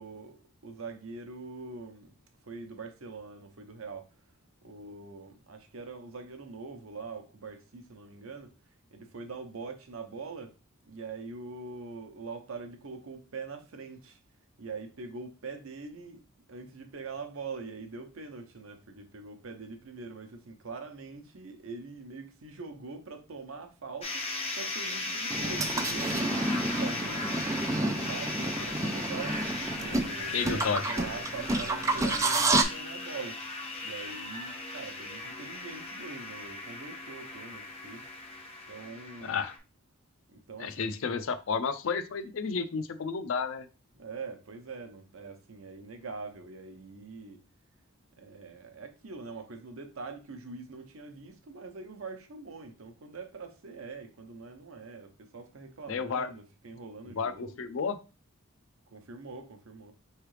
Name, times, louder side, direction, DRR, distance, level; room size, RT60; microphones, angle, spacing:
voice 1, 0.0-2.2 2.4-4.2 4.6-8.5 8.9-10.6 10.8-14.2 14.6-16.2 16.5-27.4 27.8-38.1 38.7-39.4 40.3-40.9 43.9-47.4 48.2-57.7 58.9-59.9, right 4 dB, 85° right, 0.8 m, -43 dB
sound 1, 24.0-39.6, left 2 dB, 30° left, 0.8 m, -37 dB
sound 2, 25.3-32.6, right 2 dB, 15° right, 0.3 m, -30 dB
voice 2, 30.3-30.9 39.2-39.5 40.6-43.7 55.9-56.3 57.1-58.0, left 5 dB, 70° left, 0.5 m, -31 dB
4.7 x 3.2 x 3.1 m
head